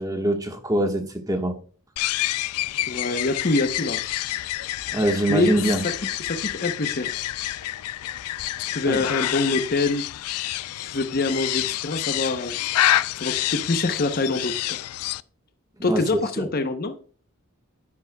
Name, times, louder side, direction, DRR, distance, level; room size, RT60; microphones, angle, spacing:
voice 1, 0.0-1.5 4.9-5.8 8.8-9.0 15.8-16.0 16.4-16.5, right 1 dB, 15° right, 1.2 m, -24 dB
sound 1, 2.0-15.2, left 14 dB, 80° left, 0.4 m, -28 dB
voice 2, 2.9-4.0 5.3-5.9 6.2-7.2 8.6-10.0 10.8-12.6 13.1-14.8 15.8-17.0, left 3 dB, 40° left, 0.7 m, -25 dB
10.5 x 10.5 x 2.2 m
head